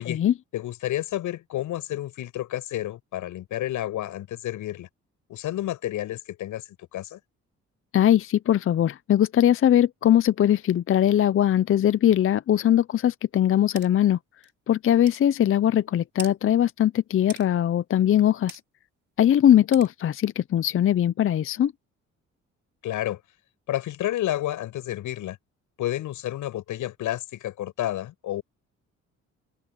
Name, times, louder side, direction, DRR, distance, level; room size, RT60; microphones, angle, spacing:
voice 1, 0.0-0.3 7.9-14.2 14.7-18.6 19.2-21.7, left 11 dB, 45° left, 0.6 m, -21 dB
voice 2, 0.5-4.9 5.3-7.2 22.8-23.2 23.7-25.4 25.8-28.4, left 13 dB, 85° left, 7.7 m, -30 dB
sound 1, 13.8-13.9 14.4-14.5 15.1-15.2 16.2-16.3 17.3-17.5 18.5-18.6 19.7-19.9, right 5 dB, 35° right, 4.8 m, -39 dB
open air
cardioid pair, 90°, 30 cm